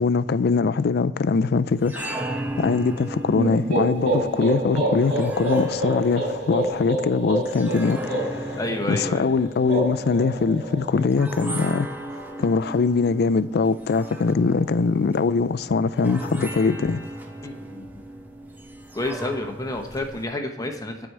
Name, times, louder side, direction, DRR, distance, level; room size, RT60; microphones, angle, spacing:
voice 1, 0.0-2.2 2.6-8.6 8.9-17.0, left 4 dB, 60° left, 0.4 m, -22 dB
sound 1, 1.7-20.2, right 1 dB, 10° right, 0.9 m, -36 dB
sound 2, 3.3-11.1, right 1 dB, 45° right, 3.3 m, -27 dB
voice 2, 8.6-9.3 17.4-17.9 18.9-21.1, left 1 dB, 20° left, 0.9 m, -29 dB
9.4 x 4.7 x 6.5 m
head